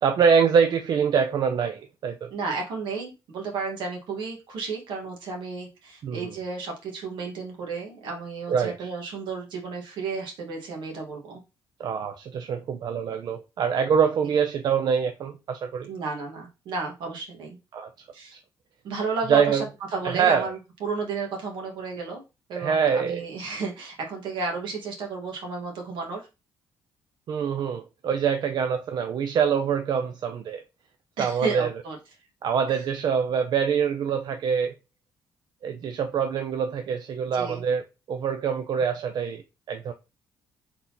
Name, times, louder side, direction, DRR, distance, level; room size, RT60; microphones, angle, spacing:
voice 1, 0.0-2.3 6.0-6.3 8.5-8.9 11.8-15.9 17.7-17.9 19.3-19.6 20.0-20.5 22.6-23.2 27.3-30.6 31.2-31.7 32.4-34.7 35.6-37.8 38.1-39.4 39.7-39.9, right 7 dB, 60° right, 0.5 m, -24 dB
voice 2, 2.3-11.4 15.9-17.6 18.1-18.3 18.8-19.7 19.9-22.2 22.5-26.3 31.2-32.0 32.7-32.9 37.3-37.6, right 4 dB, 80° right, 1.6 m, -32 dB
3.9 x 3.9 x 2.9 m
cardioid pair, 90°, 8 cm